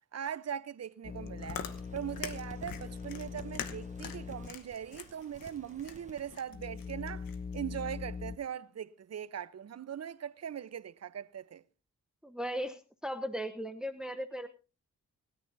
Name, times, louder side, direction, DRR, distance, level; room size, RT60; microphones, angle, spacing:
voice 1, 0.1-1.6 1.9-7.3 7.5-11.6, right 9 dB, 50° right, 0.8 m, -40 dB
sound 1, 1.0-4.6 4.9-5.0 5.6-8.4, left 5 dB, 30° left, 0.6 m, -42 dB
Chewing mastication, 1.1-7.6, left 8 dB, 85° left, 1.3 m, -45 dB
sound 2, 1.4-6.4, right 2 dB, 20° right, 1.6 m, -55 dB
voice 2, 12.2-14.5, equal, ahead, 1.0 m, -37 dB
25.5 x 10.0 x 2.7 m
supercardioid pair, 50°, 33 cm